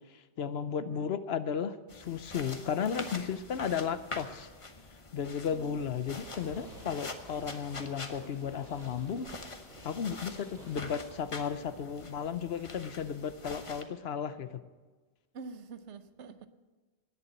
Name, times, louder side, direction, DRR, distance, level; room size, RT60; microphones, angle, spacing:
voice 1, 0.1-4.5 5.1-9.3 9.8-14.6, left 7 dB, 65° left, 12 dB, 0.9 m, -34 dB
sound 1, 1.9-13.8, left 3 dB, 30° left, 1.0 m, -45 dB
voice 2, 5.5-6.0 12.5-12.6 15.3-16.5, right 5 dB, 75° right, 11 dB, 1.1 m, -46 dB
Fireworks, 6.1-12.1, right 1 dB, 40° right, 6.0 m, -54 dB
19.0 x 7.0 x 8.2 m, 1.3 s
omnidirectional pair, 1.2 m